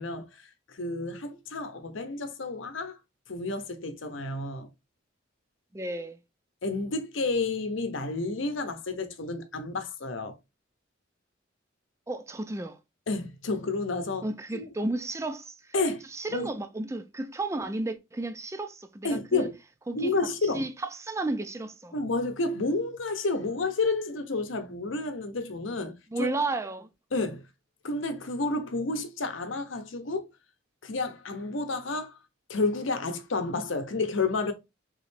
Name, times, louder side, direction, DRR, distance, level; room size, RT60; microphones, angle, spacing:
voice 1, 0.0-3.0 3.3-4.7 6.6-10.3 13.1-14.3 14.5-14.7 15.7-16.0 16.3-16.5 19.0-19.5 19.9-20.6 21.9-25.9 26.2-26.3 27.1-27.4 27.8-30.3 30.8-32.2 32.5-34.5, left 3 dB, 75° left, 0.8 m, -30 dB
voice 2, 5.7-6.2 12.1-12.8 14.2-15.7 16.1-19.5 19.9-20.1 20.5-21.9 26.1-26.9, right 2 dB, 15° right, 0.4 m, -33 dB
3.7 x 3.1 x 3.2 m
head